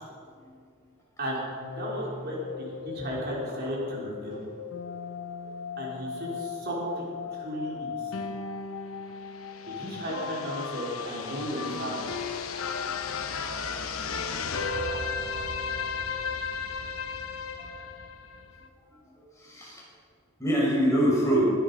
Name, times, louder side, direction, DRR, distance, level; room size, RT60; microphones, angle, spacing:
sound 1, 1.6-18.7, left 5 dB, 80° left, 1.0 m, -35 dB
voice 1, 1.8-4.4 5.8-8.3 9.7-12.1, equal, 50° right, -4 dB, 3.7 m, -34 dB
voice 2, 19.3-19.8 20.4-21.4, equal, 15° left, -5 dB, 4.9 m, -25 dB
21.0 x 10.0 x 5.4 m, 2.3 s
head